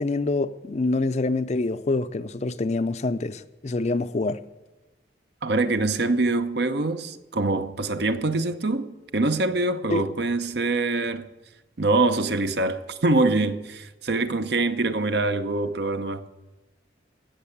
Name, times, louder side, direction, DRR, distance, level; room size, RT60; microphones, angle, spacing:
voice 1, 0.0-4.4 9.9-10.1, left 2 dB, 35° left, 0.4 m, -26 dB
voice 2, 5.4-11.3 11.8-16.3, right 2 dB, 60° right, 0.8 m, -24 dB
17.0 x 6.7 x 8.5 m
head